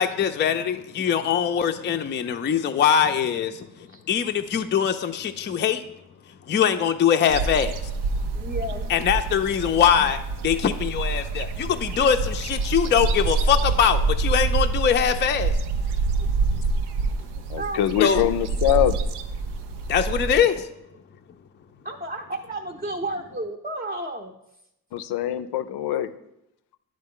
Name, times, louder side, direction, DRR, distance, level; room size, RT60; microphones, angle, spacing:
voice 1, 0.0-3.7 4.1-5.8 6.5-7.7 8.9-15.6 18.0-18.2 19.9-20.7, left 8 dB, 30° left, 0.4 m, -22 dB
sound 1, 7.3-20.4, right 4 dB, 90° right, 0.6 m, -26 dB
voice 2, 8.3-9.0 9.7-9.8 17.6-17.8 21.8-24.3, right 1 dB, 20° right, 0.6 m, -32 dB
voice 3, 17.5-19.0 24.9-26.1, left 12 dB, 80° left, 0.5 m, -23 dB
9.6 x 3.8 x 3.7 m
cardioid pair, 75°, 38 cm